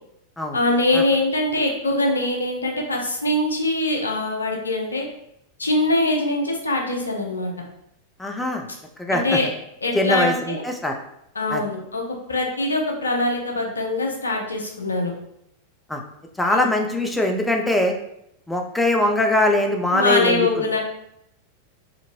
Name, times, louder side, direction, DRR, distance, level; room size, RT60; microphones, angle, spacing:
voice 1, 0.5-5.0 5.6-7.5 9.1-9.5 9.8-10.6 11.4-15.1 16.5-16.7 19.9-20.8, left 2 dB, 75° left, 1 dB, 0.5 m, -23 dB
voice 2, 8.2-8.7 9.0-9.4 9.9-10.9 11.5-11.6 15.9-16.0 16.4-17.9 18.5-20.6, left 2 dB, 5° left, 3 dB, 0.3 m, -22 dB
2.9 x 2.5 x 2.5 m, 0.77 s
figure-of-eight pair, 90°, 0 cm